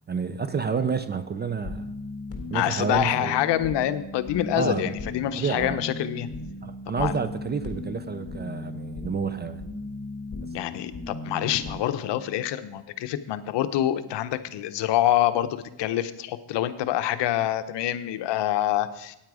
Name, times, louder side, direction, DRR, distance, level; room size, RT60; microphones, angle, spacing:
voice 1, 0.1-1.9 2.5-3.4 4.6-4.9 5.3-5.8 6.6-9.7, right 5 dB, 25° right, 13 dB, 0.4 m, -29 dB
sound 1, 1.4-11.8, left 2 dB, 30° left, 1.8 m, -37 dB
voice 2, 2.5-6.3 7.0-7.1 10.5-19.2, left 12 dB, 65° left, 12 dB, 0.8 m, -26 dB
9.0 x 8.9 x 4.8 m, 0.89 s
cardioid pair, 105°, 45 cm